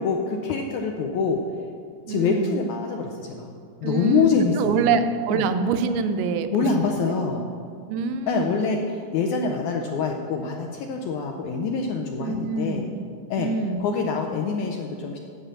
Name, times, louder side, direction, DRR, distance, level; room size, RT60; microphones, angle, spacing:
voice 1, 0.0-1.4 2.1-3.5 3.8-4.9 5.3-5.5 6.5-7.5 8.3-12.9 13.3-13.5 13.8-15.2, left 5 dB, 80° left, 3 dB, 1.7 m, -25 dB
voice 2, 2.1-2.5 3.8-4.3 4.6-6.5 7.9-8.5 12.2-12.8 13.4-13.8, right 5 dB, 80° right, 9 dB, 2.1 m, -25 dB
9.9 x 5.4 x 7.4 m, 2.3 s
omnidirectional pair, 4.0 m